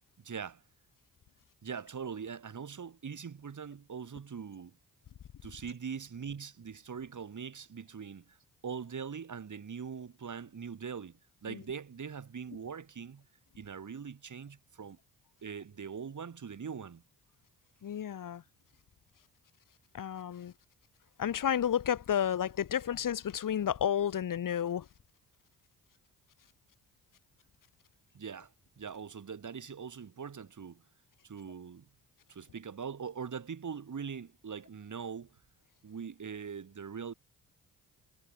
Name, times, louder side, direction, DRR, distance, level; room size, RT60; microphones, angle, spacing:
voice 1, 0.2-0.6 1.6-4.8 5.4-8.4 8.6-13.2 13.6-15.0 15.4-17.0 28.1-30.8 31.2-31.9 32.3-35.4 35.8-37.1, right 6 dB, 45° right, 3.2 m, -42 dB
voice 2, 17.8-18.4 19.9-20.5 21.2-24.9, left 9 dB, 50° left, 1.2 m, -31 dB
supercardioid pair, 50°, 41 cm